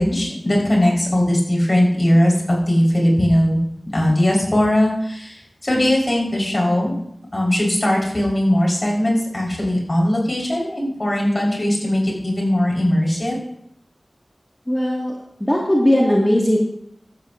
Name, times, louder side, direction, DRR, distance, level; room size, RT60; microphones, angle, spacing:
voice 1, 0.0-3.6 3.9-7.0 7.3-13.3, left 1 dB, 45° left, -2 dB, 4.4 m, -19 dB
voice 2, 14.7-15.1 15.4-16.6, left 1 dB, 15° left, -3 dB, 2.0 m, -17 dB
15.5 x 12.5 x 2.6 m, 0.72 s
wide cardioid pair, 60°, 0 cm